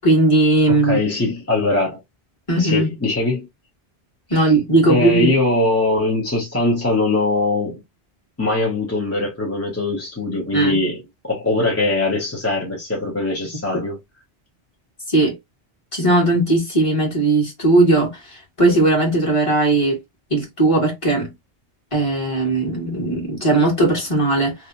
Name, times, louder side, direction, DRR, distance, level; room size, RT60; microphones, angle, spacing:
voice 1, 0.0-1.0 2.5-2.9 4.3-5.3 10.5-10.8 15.1-15.4 15.9-20.0 20.3-21.3 21.9-24.5, right 2 dB, 30° left, 1.4 m, -18 dB
voice 2, 0.7-2.0 2.6-3.5 4.3-4.5 4.9-7.8 8.4-14.0, left 2 dB, 15° left, 0.7 m, -21 dB
2.9 x 2.3 x 2.5 m
omnidirectional pair, 1.0 m